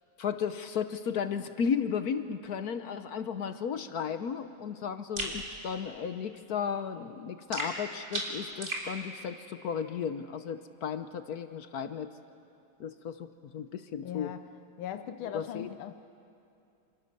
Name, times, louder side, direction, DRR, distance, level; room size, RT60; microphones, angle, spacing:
voice 1, 0.2-12.1 12.8-13.3 13.5-14.3 15.3-15.7, left 7 dB, 60° left, 10 dB, 1.1 m, -34 dB
sound 1, 5.2-5.4 7.5-8.9, right 1 dB, 35° right, 3.9 m, -35 dB
voice 2, 14.0-14.5 14.8-15.9, left 10 dB, 85° left, 9 dB, 1.6 m, -39 dB
28.0 x 27.5 x 6.7 m, 2.6 s
omnidirectional pair, 2.2 m